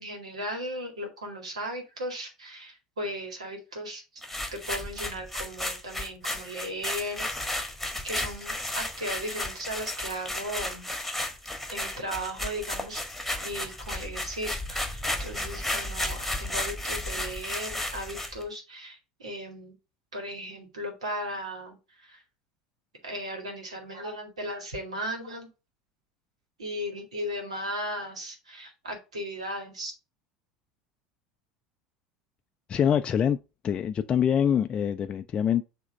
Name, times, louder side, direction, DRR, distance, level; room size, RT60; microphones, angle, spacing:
voice 1, 0.0-4.0 4.5-7.3 8.0-10.9 11.7-13.0 13.4-19.8 20.1-22.2 23.0-25.5 26.6-29.9, equal, 75° right, 2.0 m, -36 dB
sound 1, 4.2-18.4, left 1 dB, ahead, 1.5 m, -33 dB
voice 2, 32.7-33.4 33.6-35.6, left 8 dB, 30° left, 0.4 m, -24 dB
7.1 x 3.0 x 5.2 m
figure-of-eight pair, 70°, 3 cm